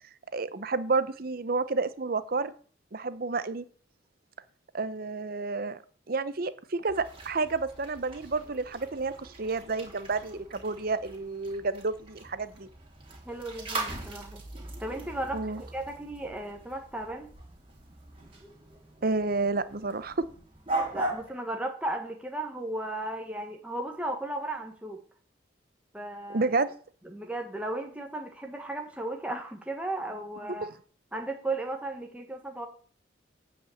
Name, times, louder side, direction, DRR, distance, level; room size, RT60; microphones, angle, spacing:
voice 1, 0.3-2.5 2.9-3.6 4.7-5.8 6.1-12.7 15.3-15.6 19.0-20.3 26.3-26.7, right 3 dB, 50° right, 14 dB, 0.7 m, -30 dB
sound 1, 6.9-21.3, right 2 dB, 30° right, 2.8 m, -40 dB
voice 2, 13.2-14.4 14.8-17.3 20.9-25.0 25.9-26.5 27.1-30.7 31.1-32.7, right 1 dB, 5° right, 2 dB, 1.3 m, -35 dB
8.9 x 5.2 x 7.8 m, 0.44 s
head